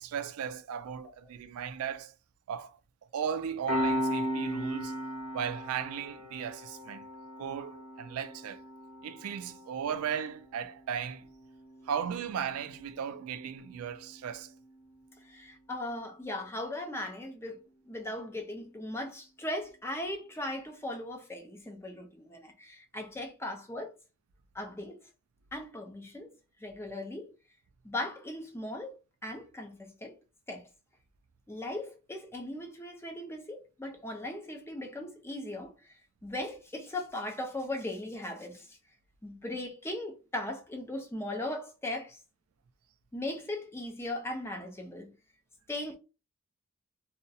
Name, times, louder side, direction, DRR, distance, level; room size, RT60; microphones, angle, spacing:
voice 1, 0.0-2.1 2.5-2.8 3.1-4.9 5.3-7.1 7.4-8.6 9.0-11.3 11.9-14.5, right 8 dB, 80° right, 0.3 m, -36 dB
Piano, 3.7-14.8, equal, 85° left, 0.9 m, -38 dB
voice 2, 15.2-17.6 17.9-23.9 24.5-25.0 25.5-26.3 26.6-27.3 27.8-29.0 29.2-30.2 30.5-30.6 31.5-35.9 36.2-38.8 39.2-42.2 43.1-45.1 45.7-46.0, left 1 dB, 10° left, 0.4 m, -38 dB
2.3 x 2.0 x 2.6 m
head